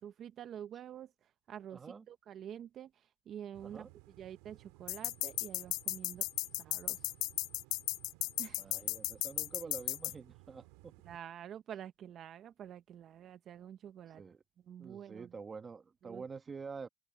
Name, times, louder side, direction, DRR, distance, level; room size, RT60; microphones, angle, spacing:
voice 1, 0.0-6.2 6.6-7.1 8.4-8.6 11.0-14.2 14.7-15.3 16.0-16.2, right 9 dB, 40° right, 0.7 m, -48 dB
voice 2, 1.7-2.0 3.6-3.9 8.6-10.9 14.1-14.4 14.8-16.9, right 5 dB, 20° right, 1.1 m, -47 dB
sound 1, 3.5-11.2, right 23 dB, 85° right, 2.8 m, -59 dB
sound 2, 4.9-10.1, left 19 dB, 65° left, 0.5 m, -35 dB
open air
cardioid pair, 140°, 0 cm